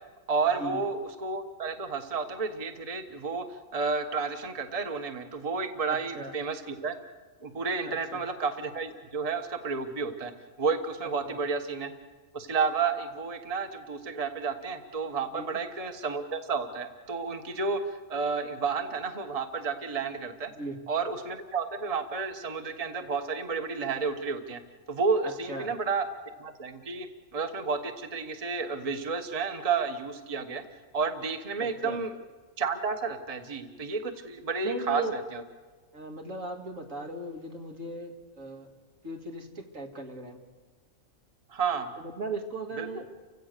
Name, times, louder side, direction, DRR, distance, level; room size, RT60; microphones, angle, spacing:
voice 1, 0.3-3.4 3.7-6.9 7.4-10.3 10.6-11.9 12.3-20.5 20.9-24.6 24.9-26.1 26.4-27.1 27.3-30.6 30.9-32.1 32.6-35.0 41.5-41.9 42.8-42.9, right 5 dB, 30° right, 7 dB, 1.3 m, -31 dB
voice 2, 5.9-6.3 7.9-8.2 11.3-11.4 15.3-15.6 20.6-20.8 25.2-25.7 31.6-32.0 34.6-35.1 35.9-38.7 39.0-40.4 42.0-43.1, right 2 dB, 75° right, 3 dB, 2.5 m, -37 dB
30.0 x 16.5 x 6.7 m, 1.3 s
omnidirectional pair, 1.4 m